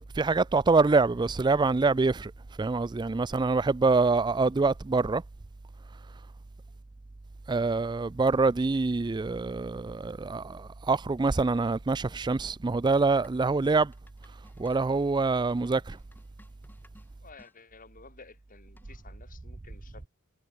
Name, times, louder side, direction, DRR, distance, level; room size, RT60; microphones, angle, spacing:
voice 1, 0.2-2.3 2.6-5.2 7.5-13.9 14.6-16.0, right 3 dB, 20° right, 0.4 m, -25 dB
sound 1, 13.2-17.6 18.8-19.2, left 1 dB, 10° left, 2.8 m, -59 dB
voice 2, 17.2-20.1, left 4 dB, 40° left, 3.3 m, -53 dB
head